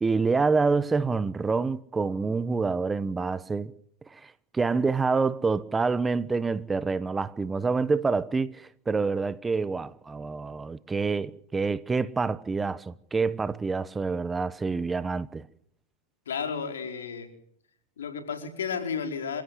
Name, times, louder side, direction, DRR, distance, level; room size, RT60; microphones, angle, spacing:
voice 1, 0.0-3.7 4.1-15.5, right 4 dB, 15° right, 1.0 m, -27 dB
voice 2, 16.3-17.3 18.0-19.4, left 6 dB, 85° left, 4.7 m, -32 dB
27.0 x 15.5 x 7.9 m
hypercardioid pair, 110°, 0 cm